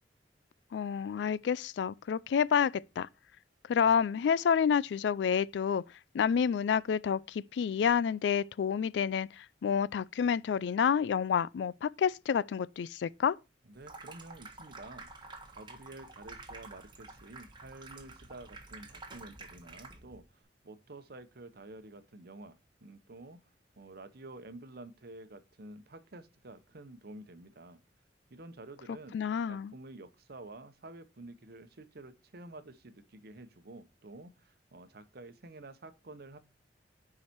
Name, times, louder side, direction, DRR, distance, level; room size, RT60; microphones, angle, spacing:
voice 1, 0.7-3.1 3.7-5.8 6.1-13.4 29.1-29.7, left 7 dB, 70° left, 0.3 m, -29 dB
voice 2, 13.6-15.1 15.5-23.4 23.8-27.8 28.3-29.2 29.4-36.4, right 2 dB, 60° right, 0.9 m, -50 dB
Water tap faucet / Sink (filling or washing), 13.7-20.2, right 3 dB, 25° right, 1.3 m, -50 dB
6.9 x 4.9 x 4.4 m
head